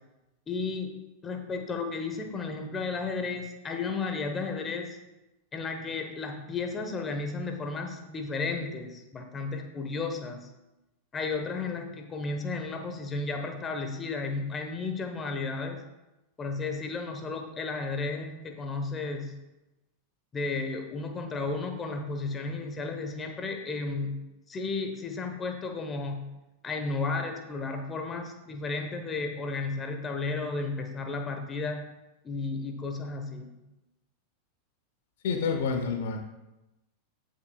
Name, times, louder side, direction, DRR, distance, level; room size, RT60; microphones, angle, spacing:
voice 1, 0.5-0.9 1.2-5.0 5.5-10.5 11.1-15.8 16.4-19.3 20.3-24.2 24.5-26.2 26.6-31.9 32.2-33.5, left 3 dB, 20° left, 5 dB, 1.2 m, -33 dB
voice 2, 35.2-36.2, left 5 dB, 55° left, 4 dB, 1.0 m, -28 dB
14.5 x 6.3 x 2.4 m, 0.97 s
figure-of-eight pair, 90°, 0 cm